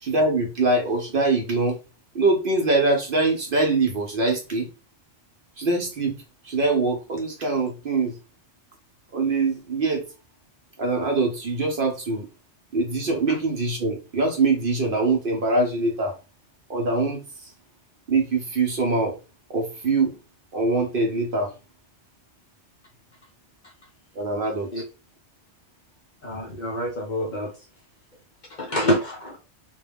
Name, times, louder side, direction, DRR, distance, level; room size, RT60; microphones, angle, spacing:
voice 1, 0.0-1.8 2.1-4.7 5.6-6.2 6.4-8.1 9.1-10.0 10.8-12.3 12.7-16.1 16.7-17.2 18.1-19.1 19.5-20.2 20.5-21.5 24.2-24.7, right 3 dB, 60° right, 2 dB, 0.7 m, -23 dB
voice 2, 26.2-27.7 28.5-29.4, equal, 50° left, 0 dB, 0.6 m, -27 dB
2.2 x 2.1 x 3.3 m, 0.31 s
omnidirectional pair, 1.2 m